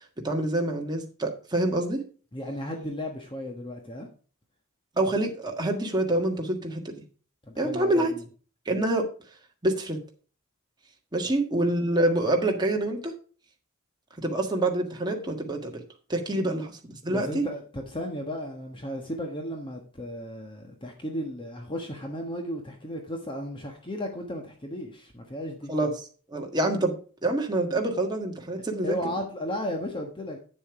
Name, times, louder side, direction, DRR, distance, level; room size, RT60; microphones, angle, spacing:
voice 1, 0.2-2.0 5.0-6.9 7.6-8.1 8.6-9.1 9.6-10.0 11.1-13.1 14.2-15.7 16.1-17.4 25.7-25.9 26.3-26.9 27.2-28.9, right 1 dB, 20° right, 2 dB, 1.6 m, -26 dB
voice 2, 2.3-4.1 7.4-8.2 17.0-25.7 28.8-30.4, left 1 dB, 25° left, 3 dB, 1.3 m, -34 dB
8.8 x 7.1 x 4.8 m, 0.39 s
head